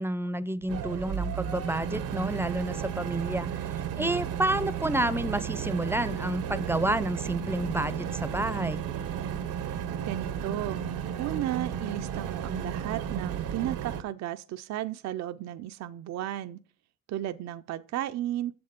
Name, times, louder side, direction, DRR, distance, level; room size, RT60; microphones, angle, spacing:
voice 1, 0.0-8.8, right 1 dB, 10° right, 0.5 m, -30 dB
sound 1, 0.7-14.0, right 8 dB, 85° right, 0.9 m, -33 dB
voice 2, 10.0-10.8 11.2-16.6 17.1-18.5, right 13 dB, 65° right, 0.5 m, -34 dB
7.3 x 6.8 x 5.2 m
cardioid pair, 90°, 30 cm